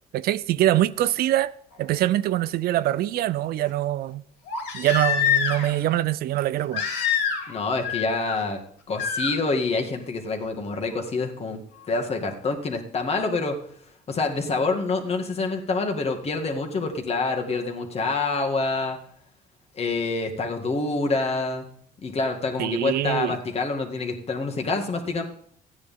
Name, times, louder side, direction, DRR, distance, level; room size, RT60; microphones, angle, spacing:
voice 1, 0.1-1.5 1.8-4.2 4.7-6.9 22.6-23.4, right 13 dB, 65° right, 0.5 m, -24 dB
Crying sobbing, 1.7-1.8 4.5-5.8 6.7-7.6 7.8-8.4 9.0-9.3 10.9-11.0, left 7 dB, 85° left, 3.1 m, -25 dB
voice 2, 7.5-8.6 8.9-11.6 11.9-13.6 14.1-19.0 19.7-21.7 22.0-25.2, left 3 dB, 35° left, 2.1 m, -26 dB
13.5 x 9.6 x 3.7 m
cardioid pair, 110°, 17 cm